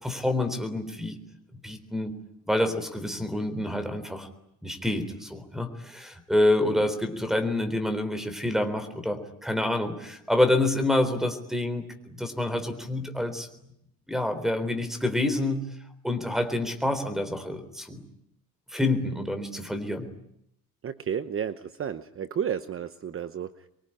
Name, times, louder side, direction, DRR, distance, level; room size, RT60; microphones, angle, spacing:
voice 1, 0.0-1.2 1.5-2.2 2.5-4.3 4.6-13.5 14.1-15.7 16.0-18.0 18.7-20.1, left 1 dB, ahead, 9 dB, 3.8 m, -27 dB
voice 2, 20.8-23.7, right 8 dB, 40° right, 11 dB, 1.0 m, -32 dB
25.0 x 23.0 x 10.0 m, 0.76 s
cardioid pair, 130°, 34 cm